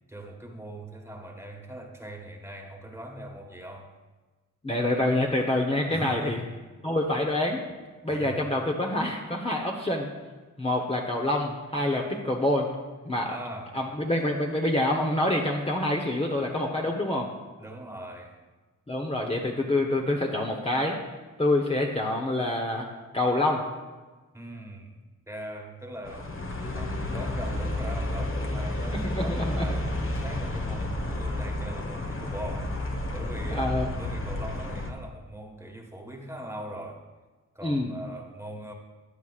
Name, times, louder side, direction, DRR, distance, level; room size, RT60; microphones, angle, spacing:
voice 1, 0.1-3.9 5.9-6.5 8.1-8.4 13.3-13.7 17.6-18.4 24.3-25.0 25.3-26.3 26.8-32.7 33.1-37.0 37.5-38.7, right 1 dB, 10° right, 1 dB, 1.5 m, -41 dB
voice 2, 4.6-6.4 6.8-7.6 8.0-10.1 10.6-12.7 13.0-13.4 13.7-17.3 18.9-21.0 21.4-22.9 23.1-23.6 28.9-29.7 33.5-33.9 37.6-37.9, left 1 dB, 20° left, -1 dB, 1.0 m, -26 dB
sound 1, 26.1-34.9, left 1 dB, 40° left, 1.3 m, -31 dB
14.5 x 9.3 x 2.5 m, 1.3 s
cardioid pair, 80°, 33 cm